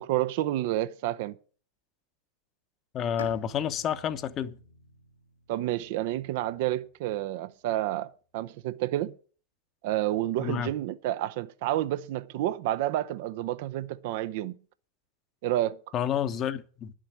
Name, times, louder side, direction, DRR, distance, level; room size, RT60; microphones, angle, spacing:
voice 1, 0.0-1.4 5.5-8.1 8.3-9.2 9.8-14.5 15.4-15.8, right 14 dB, 50° right, 0.6 m, -29 dB
voice 2, 2.9-4.6 10.4-10.7 15.9-16.9, left 9 dB, 30° left, 0.9 m, -29 dB
Bowed string instrument, 3.2-7.1, left 4 dB, 75° left, 1.3 m, -48 dB
10.5 x 7.4 x 9.3 m
figure-of-eight pair, 90°, 0 cm